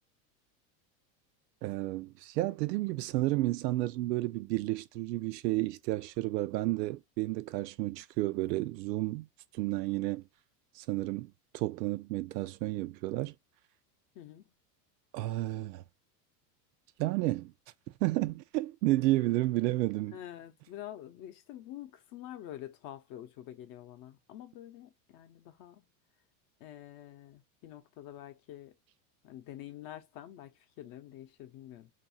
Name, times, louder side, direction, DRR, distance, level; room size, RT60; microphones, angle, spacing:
voice 1, 1.6-9.3 9.5-10.2 10.8-13.3 15.1-15.8 17.0-17.5 18.0-20.2, right 18 dB, 85° right, 0.6 m, -31 dB
voice 2, 14.1-14.5 20.1-25.9 26.6-28.8 29.2-31.9, left 12 dB, 45° left, 0.7 m, -47 dB
2.6 x 2.3 x 2.6 m
supercardioid pair, 130°, 48 cm